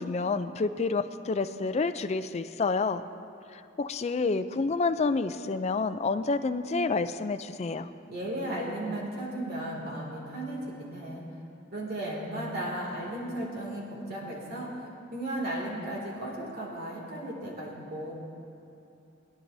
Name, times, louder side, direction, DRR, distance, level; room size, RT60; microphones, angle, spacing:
voice 1, 0.0-3.0 3.5-7.9, left 4 dB, 30° left, 10 dB, 0.4 m, -29 dB
voice 2, 8.1-11.2 11.7-14.7 15.1-18.1, right 1 dB, 50° right, -3 dB, 2.4 m, -35 dB
21.0 x 10.0 x 2.7 m, 2.8 s
head